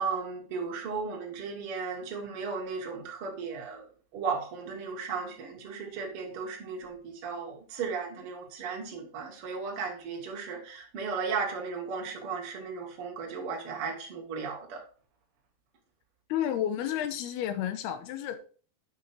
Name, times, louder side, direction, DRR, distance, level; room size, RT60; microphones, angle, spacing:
voice 1, 0.0-3.8 4.1-14.8, right 5 dB, 45° right, 1 dB, 2.4 m, -35 dB
voice 2, 16.3-18.4, left 10 dB, 85° left, 10 dB, 2.9 m, -31 dB
9.0 x 5.9 x 4.5 m, 0.40 s
omnidirectional pair, 4.5 m